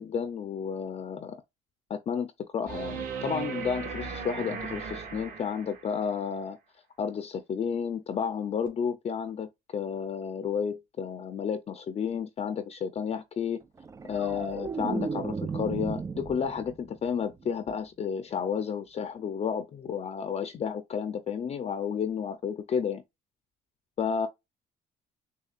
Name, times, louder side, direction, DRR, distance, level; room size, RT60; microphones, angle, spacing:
voice 1, 0.0-1.4 1.9-6.6 7.0-13.6 14.1-23.0 24.0-24.3, left 7 dB, 40° left, 0.6 m, -32 dB
sound 1, 2.7-6.0 8.7-8.8, right 6 dB, 55° right, 1.9 m, -37 dB
sound 2, 13.8-17.0 17.3-17.7, right 5 dB, 20° right, 0.3 m, -34 dB
6.5 x 2.4 x 2.4 m
cardioid pair, 110°, 17 cm